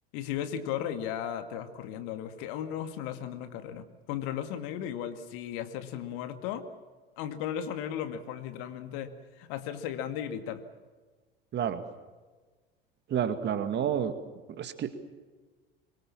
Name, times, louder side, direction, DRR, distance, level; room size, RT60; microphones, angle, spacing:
voice 1, 0.1-6.7 7.2-10.6, left 9 dB, 55° left, 9 dB, 2.0 m, -36 dB
voice 2, 13.1-14.1 14.6-15.0, right 9 dB, 35° right, 10 dB, 2.1 m, -29 dB
25.0 x 23.0 x 7.5 m, 1.3 s
figure-of-eight pair, 70°, 29 cm